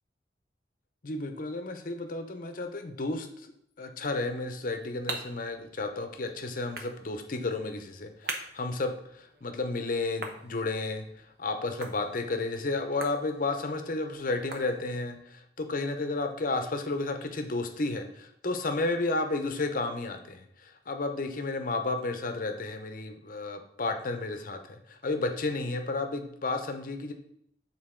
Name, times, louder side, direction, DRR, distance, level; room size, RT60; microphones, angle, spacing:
voice 1, 1.0-3.5 3.8-27.1, left 3 dB, 50° left, 7 dB, 0.7 m, -32 dB
sound 1, 4.3-15.2, right 3 dB, 60° right, 0.8 m, -45 dB
6.7 x 4.0 x 3.7 m, 0.71 s
head